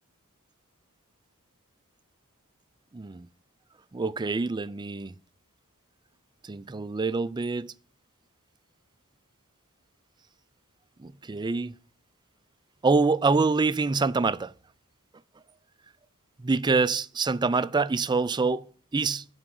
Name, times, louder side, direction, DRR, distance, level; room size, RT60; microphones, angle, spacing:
voice 1, 2.9-3.3 3.9-5.1 6.4-7.7 11.0-11.7 12.8-14.5 16.4-19.2, right 4 dB, 20° right, 0.4 m, -26 dB
14.0 x 4.9 x 7.7 m
head